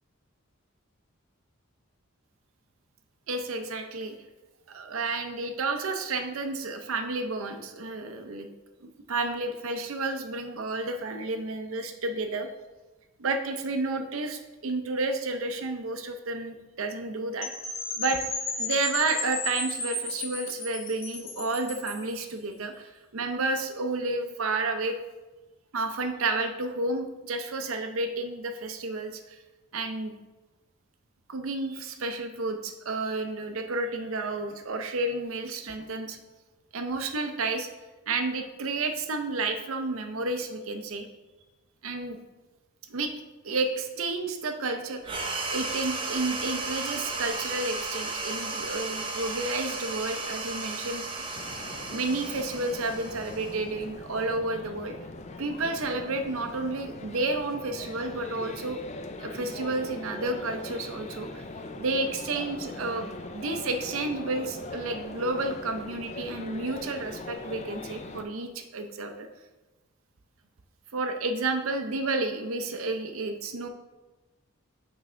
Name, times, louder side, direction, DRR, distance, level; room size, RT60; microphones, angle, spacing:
voice 1, 3.3-4.1 4.7-8.5 8.8-12.5 13.2-17.5 18.0-18.2 18.6-24.9 25.7-29.4 29.7-30.1 31.3-36.2 36.7-37.7 38.1-41.1 41.8-42.2 42.9-43.1 43.4-45.1 45.5-51.3 51.9-54.9 55.4-58.8 59.2-61.5 61.8-69.3 70.9-73.7, right 3 dB, 80° right, 6 dB, 0.6 m, -31 dB
Percussion / Wind chime, 17.4-22.1, left 2 dB, 70° left, 1.8 m, -34 dB
sound 1, 45.0-53.9, right 3 dB, 25° right, 0.6 m, -34 dB
sound 2, 51.3-68.2, left 2 dB, 35° left, 0.4 m, -41 dB
6.0 x 4.7 x 3.3 m, 1.1 s
head